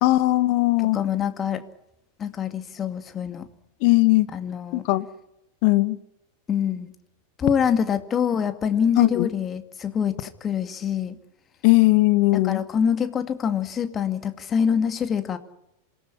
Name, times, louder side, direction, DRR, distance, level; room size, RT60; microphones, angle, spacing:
voice 1, 0.0-1.0 3.8-4.3 4.7-5.0 5.6-6.0 9.0-9.3 11.6-12.6, left 20 dB, 45° left, 14 dB, 1.6 m, -18 dB
voice 2, 0.8-1.6 2.2-3.5 4.3-4.8 6.5-6.9 7.4-11.2 12.4-15.4, left 7 dB, 25° left, 9 dB, 2.3 m, -25 dB
27.0 x 18.5 x 9.8 m, 0.84 s
figure-of-eight pair, 90°, 0 cm